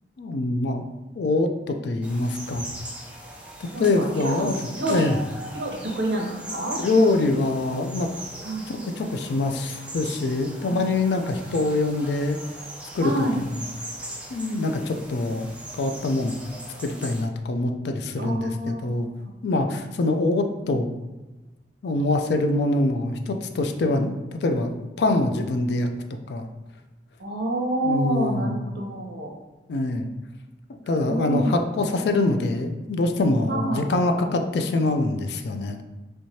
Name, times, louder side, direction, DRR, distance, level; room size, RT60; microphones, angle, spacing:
voice 1, 0.2-0.8 1.2-2.7 3.8-4.5 4.9-5.2 6.7-8.1 8.8-12.4 12.9-13.3 14.3-15.5 15.8-16.3 16.8-19.1 19.4-20.9 21.8-25.9 26.3-26.5 27.8-28.6 29.7-30.1 30.7-35.8, left 2 dB, 65° left, 5 dB, 0.4 m, -24 dB
sound 1, 2.0-17.2, right 1 dB, 5° right, 0.4 m, -40 dB
voice 2, 3.7-4.5 4.8-5.1 5.5-6.8 8.4-8.7 10.7-10.8 13.0-13.4 18.2-19.3 19.7-19.8 27.2-29.3 31.1-31.5 33.5-33.8, right 1 dB, 65° right, 0 dB, 0.7 m, -28 dB
3.2 x 3.1 x 2.7 m, 1.1 s
head